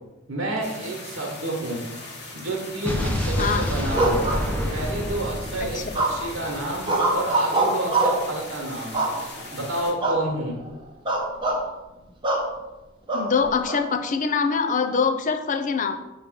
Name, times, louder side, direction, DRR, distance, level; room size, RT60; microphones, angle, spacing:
voice 1, 0.3-1.8 2.3-4.3 4.7-6.9 7.1-9.0 9.5-10.6, right 1 dB, 65° right, -2 dB, 1.3 m, -29 dB
sound 1, 0.6-9.9, left 2 dB, 55° left, 1.3 m, -40 dB
Explosion, 2.9-6.9, left 1 dB, 10° left, 0.8 m, -28 dB
sound 2, 3.9-5.0 5.9-6.4 6.8-8.3 8.9-9.5 10.0-10.3 10.6-10.7 11.1-11.6 12.2-12.5 13.1-13.8, right 2 dB, 25° right, 0.9 m, -24 dB
voice 2, 13.1-15.9, left 5 dB, 40° left, 7 dB, 0.5 m, -24 dB
6.3 x 3.0 x 5.1 m, 1.0 s
head